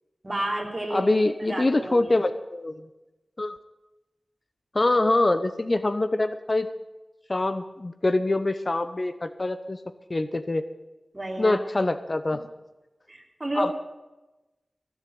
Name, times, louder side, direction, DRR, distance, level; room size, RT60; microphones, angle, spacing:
voice 1, 0.2-2.1 11.1-11.6 13.1-13.7, right 1 dB, 30° right, 2 dB, 3.1 m, -31 dB
voice 2, 0.9-2.9 3.4-3.6 4.7-6.7 7.3-9.8 10.1-10.6 11.4-12.4 13.5-13.7, left 2 dB, 40° left, 11 dB, 0.8 m, -24 dB
16.0 x 7.3 x 9.3 m, 1.1 s
wide cardioid pair, 65°, 0 cm